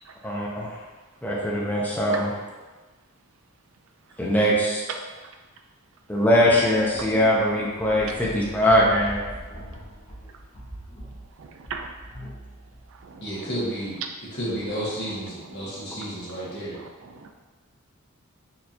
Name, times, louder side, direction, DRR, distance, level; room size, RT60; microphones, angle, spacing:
voice 1, 0.2-0.8 1.2-2.3 4.2-4.8 6.1-9.2, equal, 10° left, -5 dB, 0.6 m, -21 dB
sound 1, 6.3-13.2, equal, 35° left, 1.0 m, -41 dB
voice 2, 11.4-11.9 13.0-13.3 15.7-15.8 16.7-16.9 17.1-17.3, right 5 dB, 65° right, 4 dB, 0.4 m, -39 dB
voice 3, 13.2-14.0 14.3-16.8, equal, 55° left, -7 dB, 1.2 m, -31 dB
4.3 x 2.9 x 2.6 m, 1.3 s
head